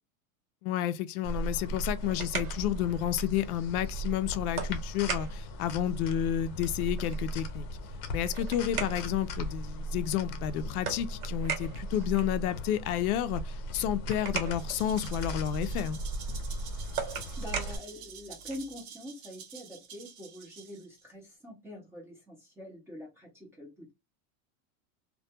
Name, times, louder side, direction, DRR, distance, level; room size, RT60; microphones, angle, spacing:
voice 1, 0.6-7.7 8.1-16.0, left 11 dB, 90° left, 0.5 m, -31 dB
sound 1, 1.2-17.8, right 1 dB, 45° left, 0.6 m, -37 dB
sound 2, 2.0-18.8, right 5 dB, 85° right, 1.1 m, -42 dB
Rattle (instrument), 14.5-21.0, right 7 dB, 65° right, 0.8 m, -48 dB
voice 2, 16.9-23.9, left 1 dB, 5° right, 0.4 m, -45 dB
2.2 x 2.2 x 2.6 m
supercardioid pair, 160°, 43 cm